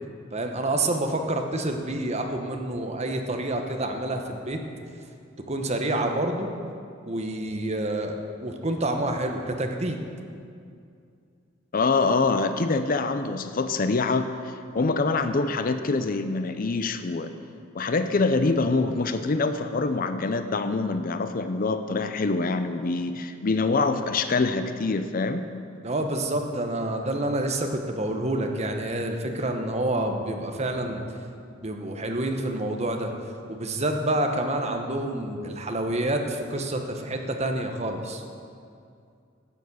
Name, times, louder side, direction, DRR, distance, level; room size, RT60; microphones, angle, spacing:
voice 1, 0.3-4.6 5.5-6.5 7.1-10.0 25.8-31.0 31.6-33.1 33.5-38.2, right 1 dB, 35° right, 4 dB, 1.0 m, -28 dB
voice 2, 11.7-17.3 17.7-25.5, left 3 dB, 45° left, 9 dB, 0.6 m, -25 dB
11.0 x 7.1 x 8.1 m, 2.4 s
head